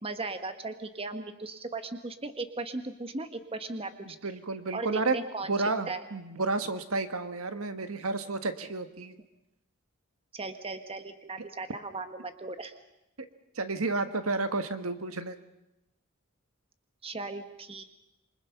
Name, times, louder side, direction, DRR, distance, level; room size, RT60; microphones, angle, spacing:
voice 1, 0.0-4.3 4.7-6.0 10.3-12.7 17.0-17.8, right 3 dB, 25° right, 8 dB, 1.4 m, -37 dB
voice 2, 4.2-5.2 5.5-9.1 13.5-15.4, right 3 dB, 80° right, 9 dB, 1.6 m, -31 dB
27.5 x 25.0 x 5.8 m, 0.90 s
head